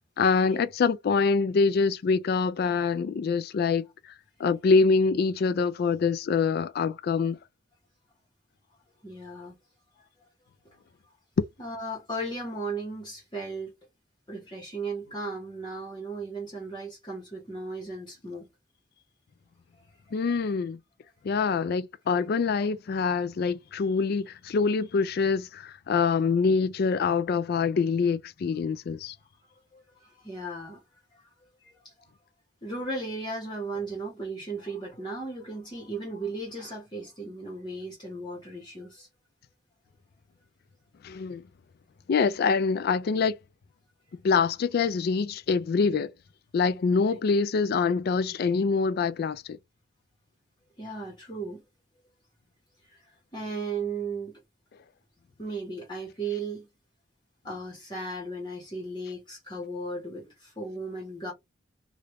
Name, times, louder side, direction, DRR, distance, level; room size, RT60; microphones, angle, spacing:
voice 1, 0.2-3.9 4.4-7.4 11.4-11.5 20.1-20.8 21.2-29.2 41.0-41.4 42.1-43.4 44.2-46.1 46.5-49.6, left 5 dB, 50° left, 0.3 m, -25 dB
voice 2, 9.0-9.5 10.0-10.1 11.6-13.7 14.3-18.5 19.8-20.2 21.4-21.5 29.7-30.8 31.1-31.2 31.6-31.9 32.6-39.1 47.1-47.2 50.8-51.6 52.9-53.0 53.3-54.3 55.4-56.7 57.4-61.3, right 2 dB, 25° left, 1.2 m, -36 dB
3.3 x 2.5 x 3.1 m
head